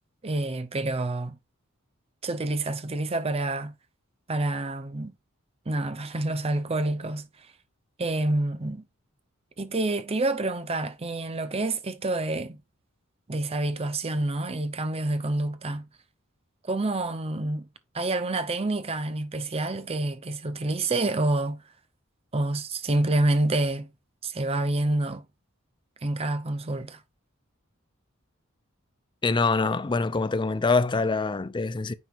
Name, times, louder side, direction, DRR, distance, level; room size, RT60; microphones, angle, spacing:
voice 1, 0.2-1.4 2.2-3.7 4.3-5.1 5.7-7.3 8.0-8.8 9.6-12.6 13.3-15.8 16.6-17.7 17.9-21.6 22.3-23.9 24.2-25.2 26.0-27.0, right 2 dB, 30° right, 0.7 m, -28 dB
voice 2, 29.2-31.9, left 4 dB, 25° left, 0.4 m, -25 dB
9.4 x 4.4 x 2.6 m
head